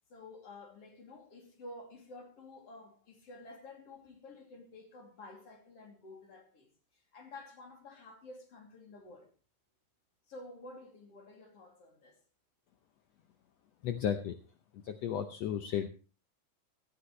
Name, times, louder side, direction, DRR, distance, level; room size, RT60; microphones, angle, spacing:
voice 1, 0.1-9.3 10.3-12.2, left 2 dB, 50° left, 3.6 m, -51 dB
voice 2, 13.8-14.4 14.8-15.9, left 9 dB, 70° left, 1.7 m, -33 dB
17.0 x 11.5 x 3.2 m
omnidirectional pair, 3.5 m